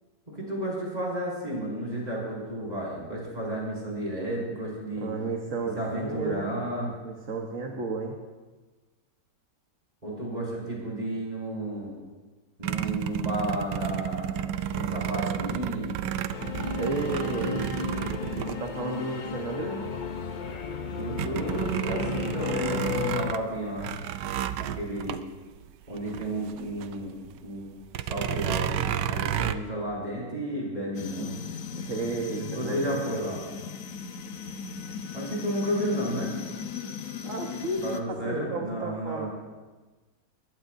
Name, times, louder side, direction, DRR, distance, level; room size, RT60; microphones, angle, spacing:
voice 1, 0.3-5.1 5.7-6.9 7.7-7.8 10.0-11.9 12.6-15.9 20.8-24.0 24.6-25.2 25.9-27.1 27.4-27.7 28.1-31.3 32.4-33.4 35.1-36.3 37.8-39.3, right 1 dB, 20° right, -5 dB, 6.2 m, -32 dB
voice 2, 5.0-8.2 16.7-17.7 18.4-19.9 31.8-33.1 37.2-39.3, right 3 dB, 50° right, 1 dB, 1.6 m, -33 dB
sound 1, 12.6-19.3 19.9-20.0 20.3-27.0 27.3-27.4 27.9-29.6, right 10 dB, 75° right, 1.3 m, -31 dB
Singing / Musical instrument, 16.3-23.3, left 6 dB, 85° left, 0.4 m, -33 dB
sound 2, 30.9-38.0, left 6 dB, 50° left, 1.2 m, -37 dB
22.5 x 21.0 x 2.7 m, 1.3 s
omnidirectional pair, 1.9 m